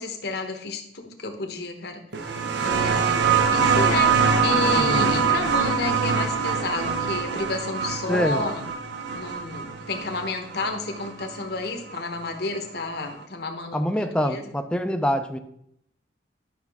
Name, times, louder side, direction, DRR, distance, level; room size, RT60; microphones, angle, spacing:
voice 1, 0.0-8.6 9.1-14.5, left 3 dB, 60° left, 4 dB, 1.0 m, -31 dB
sound 1, 2.1-11.4 12.5-12.6, right 5 dB, 70° right, 0.7 m, -24 dB
voice 2, 4.8-5.1 8.1-8.4 13.7-15.4, equal, 5° left, 7 dB, 0.5 m, -25 dB
10.5 x 5.8 x 3.5 m, 0.73 s
head